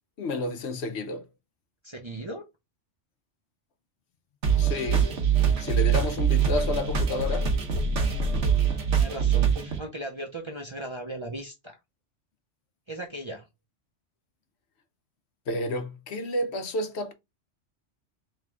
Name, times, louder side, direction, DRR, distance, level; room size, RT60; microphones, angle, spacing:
voice 1, 0.2-1.2 4.6-5.1 5.6-7.5 15.5-17.1, left 1 dB, 65° left, 0.9 m, -30 dB
voice 2, 1.8-2.4 8.9-11.8 12.9-13.5, right 1 dB, 30° right, 0.6 m, -37 dB
sound 1, 4.4-9.8, right 6 dB, 70° right, 1.3 m, -24 dB
3.6 x 3.3 x 3.3 m
omnidirectional pair, 1.3 m